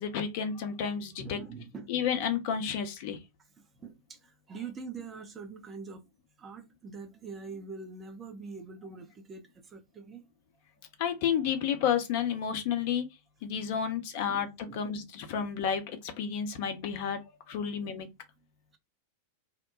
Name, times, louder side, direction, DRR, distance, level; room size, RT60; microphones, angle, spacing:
voice 1, 0.0-1.4 1.9-3.2 11.0-13.1 13.4-17.2 17.5-18.1, left 8 dB, 50° left, 0.7 m, -31 dB
voice 2, 1.2-1.9 3.6-6.0 6.4-10.3 14.2-14.9 15.4-15.5, right 4 dB, 20° right, 0.7 m, -44 dB
2.8 x 2.2 x 3.8 m
figure-of-eight pair, 90°, 0 cm